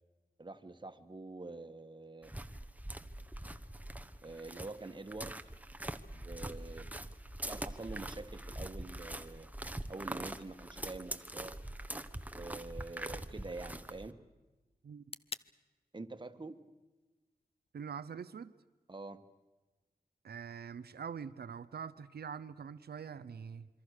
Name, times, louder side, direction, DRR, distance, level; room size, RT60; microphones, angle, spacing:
voice 1, 0.4-2.3 4.2-5.4 6.1-6.9 7.5-9.5 9.9-11.6 12.3-14.2 15.9-16.6 18.9-19.2, right 2 dB, 30° right, 8 dB, 1.5 m, -46 dB
sound 1, 2.2-14.1, right 1 dB, 10° right, 1.1 m, -43 dB
sound 2, 11.0-19.0, left 4 dB, 40° left, 0.7 m, -56 dB
voice 2, 17.7-18.5 20.2-23.7, right 7 dB, 90° right, 13 dB, 0.7 m, -44 dB
27.0 x 24.0 x 6.6 m, 1.2 s
wide cardioid pair, 65°, 16 cm